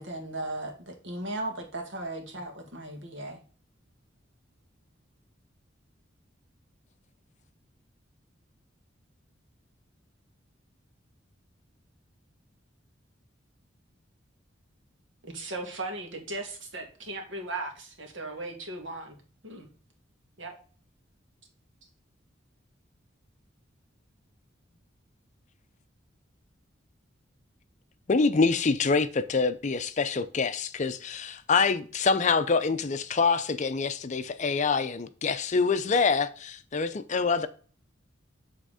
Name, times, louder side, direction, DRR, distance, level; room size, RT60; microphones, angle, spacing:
voice 1, 0.0-3.4, right 1 dB, 70° right, 1.9 m, -36 dB
voice 2, 15.2-19.2 19.4-19.7 20.4-20.5, right 2 dB, 90° right, 1.9 m, -37 dB
voice 3, 28.1-37.5, left 4 dB, 40° left, 0.5 m, -26 dB
7.7 x 3.6 x 4.9 m
head